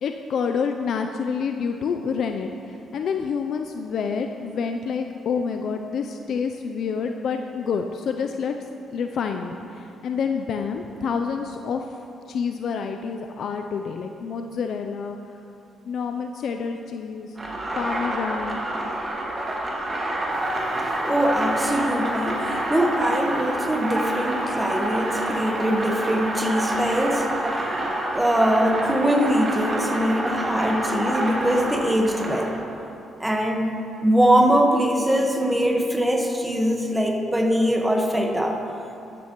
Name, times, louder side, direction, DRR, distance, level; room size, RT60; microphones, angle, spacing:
voice 1, 0.0-8.5 8.9-11.9 12.3-15.2 15.9-17.4 17.8-18.6, left 6 dB, 65° left, 5 dB, 0.5 m, -28 dB
sound 1, 17.4-32.6, right 1 dB, 30° right, 2.3 m, -27 dB
voice 2, 21.0-27.3 28.1-32.6 33.2-33.7 34.0-38.6, equal, 10° right, 2 dB, 1.3 m, -22 dB
12.5 x 12.0 x 3.1 m, 2.8 s
cardioid pair, 90°, 0 cm